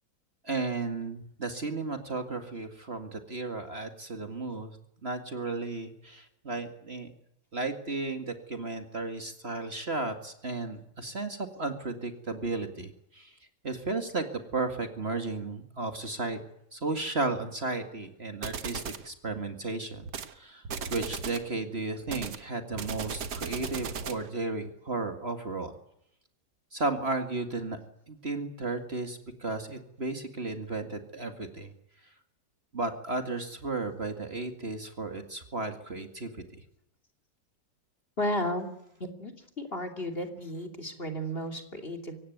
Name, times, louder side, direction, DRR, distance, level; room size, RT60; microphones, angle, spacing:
voice 1, 0.4-4.8 5.0-7.1 7.5-13.3 13.6-14.3 14.5-16.4 16.7-20.0 20.3-20.6 20.9-25.7 26.7-27.8 28.1-31.7 32.7-36.6, right 3 dB, 35° right, 7 dB, 2.2 m, -34 dB
sound 1, 18.4-19.1 20.0-20.3 20.6-21.5 22.1-24.3, right 6 dB, 70° right, 2.0 m, -36 dB
voice 2, 38.2-38.7 39.0-42.2, equal, 35° left, 5 dB, 3.0 m, -33 dB
24.5 x 17.5 x 9.3 m, 0.78 s
omnidirectional pair, 1.8 m